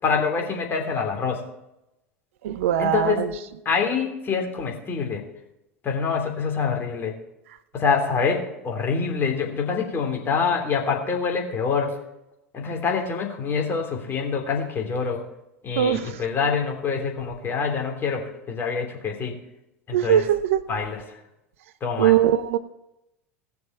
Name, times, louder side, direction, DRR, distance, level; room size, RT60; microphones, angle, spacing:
voice 1, 0.0-1.4 2.8-3.3 3.6-5.2 5.8-7.2 7.7-12.0 12.5-15.2 15.6-19.4 19.9-20.2 20.7-21.0 21.8-22.1, left 5 dB, 30° left, 2 dB, 3.4 m, -25 dB
voice 2, 2.4-3.3 15.8-16.2 19.9-20.6 22.0-22.6, right 11 dB, 70° right, 13 dB, 0.7 m, -21 dB
18.0 x 6.9 x 4.5 m, 0.88 s
figure-of-eight pair, 80°, 7 cm